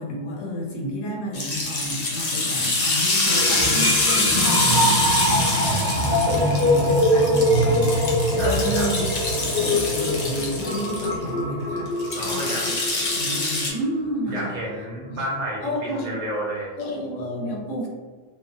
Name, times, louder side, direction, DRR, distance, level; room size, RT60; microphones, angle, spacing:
voice 1, 0.0-3.9 4.1-11.9 12.2-12.7 13.1-14.5 15.1-15.2 15.6-16.2 16.8-17.9, equal, 80° left, -1 dB, 1.0 m, -31 dB
sound 1, 1.3-11.1 12.0-13.7, left 2 dB, 55° left, 0.4 m, -25 dB
sound 2, 3.2-14.0 14.4-14.6, equal, 5° right, 0.4 m, -23 dB
voice 2, 8.4-8.9 12.1-12.7 14.3-16.7, equal, 85° right, -4 dB, 1.0 m, -31 dB
3.0 x 2.0 x 2.5 m, 1.5 s
omnidirectional pair, 1.3 m